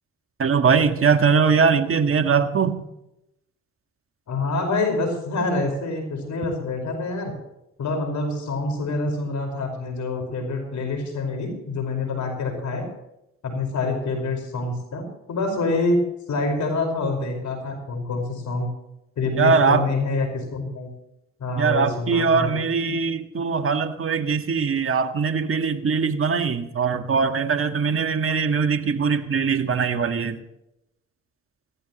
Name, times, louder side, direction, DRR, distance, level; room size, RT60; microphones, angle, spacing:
voice 1, 0.4-2.8 19.3-19.9 21.6-30.4, right 5 dB, 45° right, 8 dB, 1.7 m, -21 dB
voice 2, 4.3-7.3 7.8-12.9 13.4-16.0 16.3-18.7 19.2-20.9 21.4-22.6, left 3 dB, 65° left, 4 dB, 5.2 m, -26 dB
19.5 x 16.0 x 3.1 m, 0.87 s
supercardioid pair, 60°, 32 cm